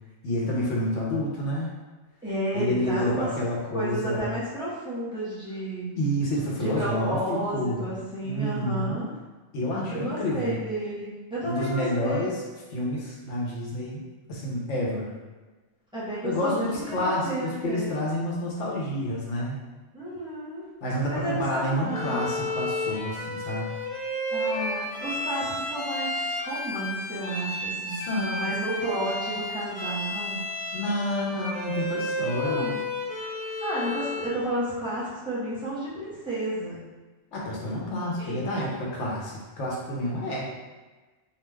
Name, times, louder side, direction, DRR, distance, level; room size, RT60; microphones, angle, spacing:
voice 1, 0.2-1.7 2.5-4.3 6.0-7.8 8.2-9.0 9.5-10.6 11.4-12.4 12.7-15.1 16.2-19.6 20.8-23.7 27.9-28.5 30.7-32.7 37.3-40.4, left 1 dB, 85° left, -4 dB, 1.0 m, -29 dB
voice 2, 2.2-3.3 3.7-5.9 6.6-9.1 9.9-12.2 15.9-17.9 19.9-20.7 21.1-22.3 24.3-26.1 26.4-30.4 32.3-32.8 33.4-36.8 38.2-38.7, right 1 dB, 5° right, -11 dB, 0.8 m, -32 dB
Bowed string instrument, 21.9-34.4, left 1 dB, 60° left, 0.4 m, -32 dB
2.4 x 2.2 x 3.3 m, 1.3 s
omnidirectional pair, 1.2 m